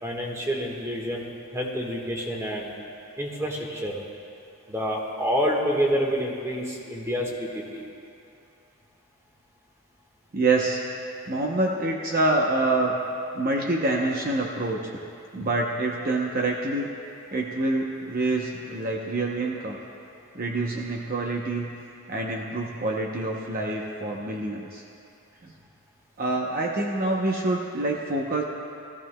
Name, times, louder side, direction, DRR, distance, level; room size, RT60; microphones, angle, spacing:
voice 1, 0.0-2.7 3.2-4.0 4.7-7.8, equal, 15° right, -1 dB, 1.4 m, -28 dB
voice 2, 10.3-10.8 11.3-13.0 13.3-14.8 15.3-16.9 17.3-19.8 20.3-21.7 22.1-24.8 25.4-25.5 26.2-28.4, right 2 dB, 40° right, -1 dB, 0.7 m, -26 dB
20.0 x 14.0 x 2.2 m, 2.5 s
head